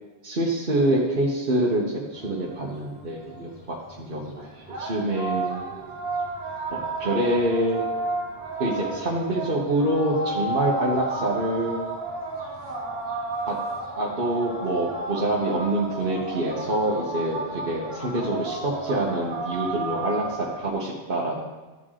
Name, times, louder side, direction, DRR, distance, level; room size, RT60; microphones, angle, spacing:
voice 1, 0.2-4.5 4.8-5.6 6.7-7.8 8.6-11.8 13.5-13.6 14.0-21.5, right 1 dB, 50° right, -4 dB, 1.4 m, -26 dB
sound 1, 2.1-20.7, right 2 dB, 20° right, 2.5 m, -33 dB
13.5 x 4.7 x 3.8 m, 1.2 s
omnidirectional pair, 1.2 m